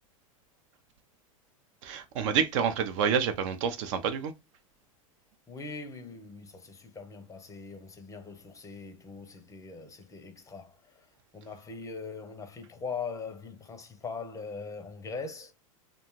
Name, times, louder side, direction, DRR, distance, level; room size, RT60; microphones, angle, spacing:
voice 1, 1.8-4.3, right 7 dB, 60° right, 0.5 m, -28 dB
voice 2, 5.5-11.0 11.3-15.5, left 4 dB, 20° left, 0.5 m, -41 dB
2.6 x 2.3 x 2.9 m
hypercardioid pair, 105°, 18 cm